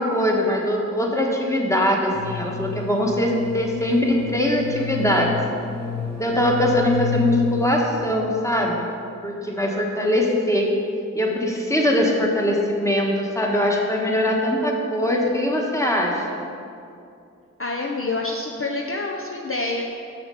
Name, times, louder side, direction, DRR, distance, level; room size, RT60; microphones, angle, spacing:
voice 1, 0.0-5.3 6.2-8.9 9.2-10.7 11.1-16.4, left 1 dB, 10° left, -1 dB, 1.4 m, -22 dB
sound 1, 2.1-8.1, left 6 dB, 60° right, 0.9 m, -30 dB
voice 2, 17.6-19.8, left 2 dB, 45° left, 0 dB, 0.7 m, -27 dB
6.8 x 6.6 x 5.6 m, 2.5 s
wide cardioid pair, 40°, 30 cm